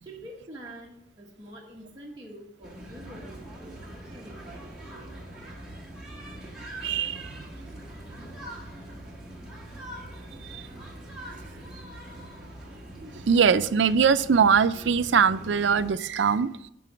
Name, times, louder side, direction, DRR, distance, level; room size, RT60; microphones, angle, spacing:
voice 1, 0.0-5.2, right 1 dB, 25° right, -5 dB, 1.2 m, -46 dB
sound 1, 2.6-15.9, right 1 dB, 5° right, 1.6 m, -43 dB
voice 2, 6.8-7.2 10.5-10.6 13.3-16.5, right 6 dB, 80° right, 13 dB, 0.4 m, -21 dB
11.0 x 3.8 x 6.9 m, 0.83 s
head